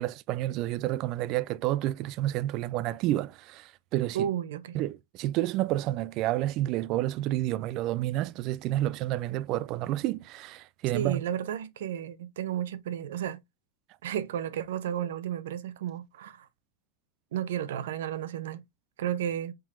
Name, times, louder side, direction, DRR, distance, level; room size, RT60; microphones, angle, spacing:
voice 1, 0.0-4.3 4.7-11.2, right 15 dB, 45° right, 0.3 m, -30 dB
voice 2, 4.1-4.8 10.9-13.4 14.0-16.5 17.3-18.6 19.0-19.5, right 10 dB, 80° right, 0.6 m, -32 dB
4.5 x 3.8 x 2.5 m
supercardioid pair, 135°, 0 cm